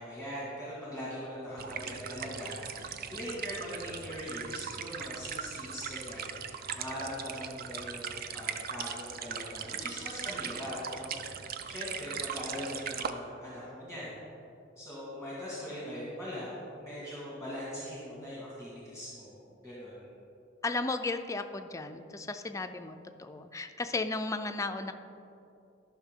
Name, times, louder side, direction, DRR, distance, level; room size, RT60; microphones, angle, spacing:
voice 1, 0.0-14.2 14.8-19.4 19.6-20.1, equal, 5° right, -8 dB, 1.8 m, -41 dB
sound 1, 1.6-13.1, right 7 dB, 50° right, 0.4 m, -39 dB
voice 2, 20.6-24.9, left 3 dB, 15° left, 7 dB, 0.4 m, -35 dB
13.0 x 5.8 x 3.6 m, 2.7 s
head